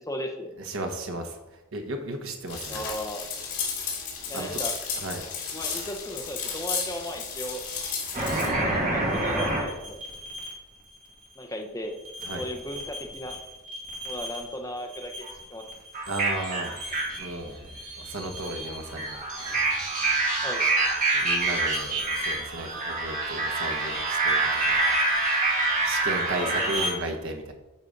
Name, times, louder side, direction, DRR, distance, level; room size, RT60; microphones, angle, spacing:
voice 1, 0.0-0.6 2.7-3.3 4.3-4.8 5.5-7.6 8.1-10.0 11.4-12.0 12.3-13.4 14.0-15.6 20.4-20.7 21.1-21.2 26.4-26.9, equal, 15° left, 3 dB, 0.7 m, -36 dB
voice 2, 0.6-1.4 1.7-2.8 4.3-4.6 5.0-5.2 12.2-12.4 16.1-16.8 17.2-17.6 18.0-19.8 21.2-24.5 25.8-27.5, right 2 dB, 60° right, 4 dB, 1.1 m, -34 dB
sound 1, 2.5-8.5, left 6 dB, 75° left, 2.1 m, -33 dB
sound 2, 8.1-10.5 12.1-13.4 13.7-14.5 14.9-26.9, right 2 dB, 35° right, 2.0 m, -27 dB
8.4 x 4.1 x 5.1 m, 1.0 s
head